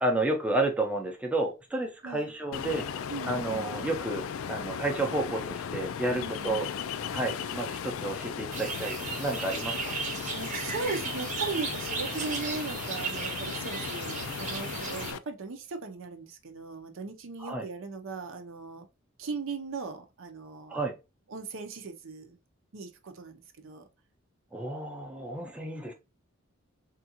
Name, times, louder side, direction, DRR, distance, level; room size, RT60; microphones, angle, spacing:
voice 1, 0.0-2.9 3.3-6.7 7.1-9.9 17.4-17.6 20.7-21.0 24.5-25.9, right 2 dB, 5° right, 0.5 m, -31 dB
Ocean, 2.5-15.2, left 7 dB, 75° left, 0.3 m, -37 dB
voice 2, 3.1-3.7 6.1-6.6 10.3-18.9 19.2-20.8 21.3-22.4 22.7-23.8, right 4 dB, 65° right, 0.6 m, -38 dB
sound 1, 8.5-15.1, right 4 dB, 35° right, 0.8 m, -35 dB
3.6 x 2.4 x 2.8 m
head